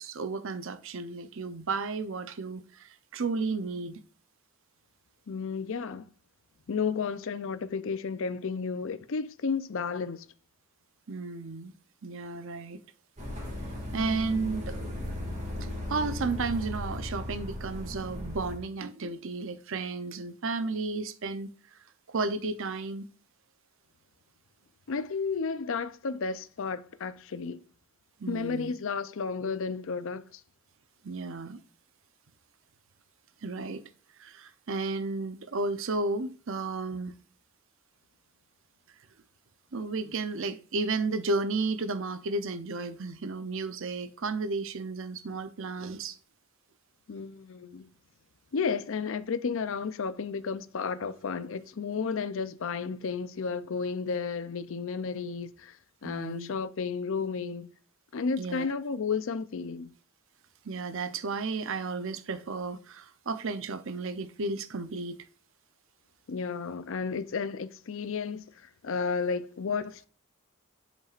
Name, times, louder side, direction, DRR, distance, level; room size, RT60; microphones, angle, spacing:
voice 1, 0.0-4.0 11.1-11.7 12.0-12.8 13.9-14.8 15.6-21.5 22.1-23.1 28.2-28.7 31.0-31.6 33.4-33.8 34.2-37.2 39.7-46.2 56.0-56.5 58.4-58.7 60.6-65.2, right 3 dB, 65° right, 0.7 m, -33 dB
voice 2, 5.3-6.1 6.7-10.3 24.9-27.6 28.3-30.4 47.1-47.9 48.5-55.8 56.0-57.7 58.1-59.9 66.3-70.1, left 5 dB, 65° left, 0.5 m, -32 dB
sound 1, 13.2-18.6, left 1 dB, 35° right, 2.1 m, -36 dB
10.5 x 5.3 x 2.5 m
head